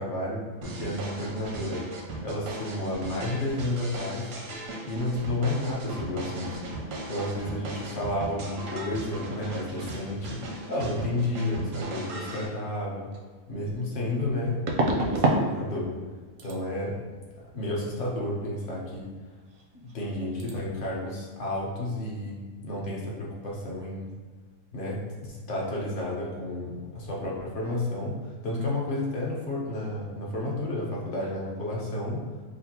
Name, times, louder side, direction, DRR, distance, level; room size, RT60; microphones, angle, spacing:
voice 1, 0.0-1.9 2.2-4.3 4.8-6.6 7.1-10.4 10.7-13.1 13.5-14.6 15.0-16.0 16.4-17.0 17.5-19.1 19.7-24.1 24.7-32.3, left 1 dB, 50° left, -4 dB, 0.8 m, -31 dB
sound 1, 0.6-12.5, right 2 dB, 90° right, 1.0 m, -38 dB
sound 2, 13.1-13.2 14.7-15.5 15.7-16.1 16.4-16.6 19.5-19.6 19.9-20.1 20.4-20.5, right 2 dB, 60° right, 0.6 m, -26 dB
5.0 x 2.1 x 2.7 m, 1.5 s
omnidirectional pair, 1.3 m